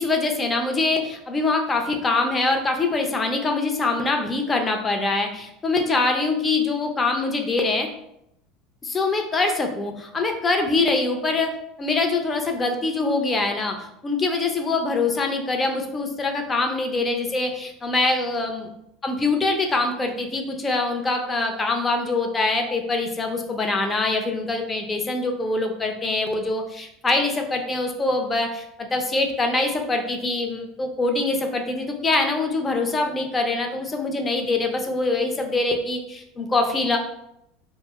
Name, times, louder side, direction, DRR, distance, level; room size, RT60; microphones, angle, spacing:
voice 1, 0.0-7.9 8.8-11.5 11.8-18.7 19.0-37.0, left 3 dB, 25° left, 4 dB, 0.5 m, -24 dB
2.7 x 2.0 x 3.4 m, 0.79 s
figure-of-eight pair, 70°, 0 cm